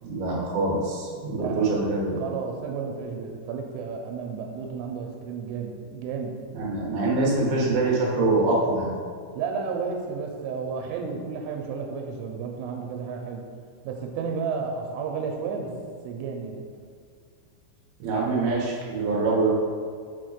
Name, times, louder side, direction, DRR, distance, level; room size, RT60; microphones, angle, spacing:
voice 1, 0.0-2.2 6.5-8.9 18.0-19.5, right 3 dB, 65° right, -4 dB, 2.9 m, -24 dB
voice 2, 1.3-1.9 2.2-6.4 9.4-13.4 13.8-15.7 16.0-16.6, right 5 dB, 90° right, 2 dB, 3.3 m, -32 dB
7.1 x 4.3 x 6.5 m, 2.1 s
omnidirectional pair, 5.6 m